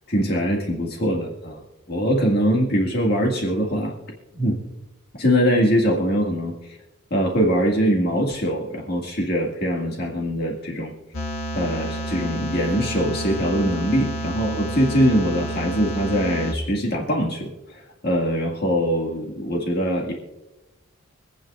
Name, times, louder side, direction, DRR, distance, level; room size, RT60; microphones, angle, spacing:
voice 1, 0.1-1.6 1.9-3.9 4.4-4.6 5.2-6.8 7.1-10.9 11.5-20.1, equal, 45° left, -1 dB, 1.9 m, -22 dB
sound 1, 11.1-16.5, right 1 dB, 65° left, 1.7 m, -30 dB
25.5 x 9.0 x 2.4 m, 1.0 s
head